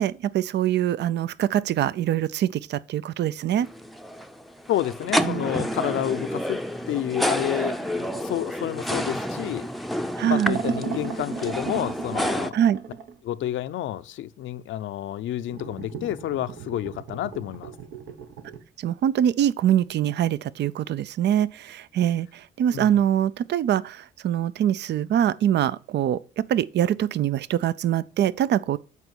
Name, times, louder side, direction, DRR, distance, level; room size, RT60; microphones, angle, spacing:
voice 1, 0.0-3.7 5.2-5.5 10.2-10.6 12.5-12.8 18.8-28.8, right 10 dB, 60° right, 0.5 m, -24 dB
sound 1, 3.6-12.5, equal, ahead, 0.6 m, -29 dB
voice 2, 4.7-9.7 10.2-12.6 13.2-17.7 22.7-22.9, left 12 dB, 75° left, 0.6 m, -30 dB
sound 2, 10.4-13.1 15.5-18.6, right 6 dB, 75° right, 1.2 m, -35 dB
8.3 x 4.5 x 6.9 m
cardioid pair, 90°, 20 cm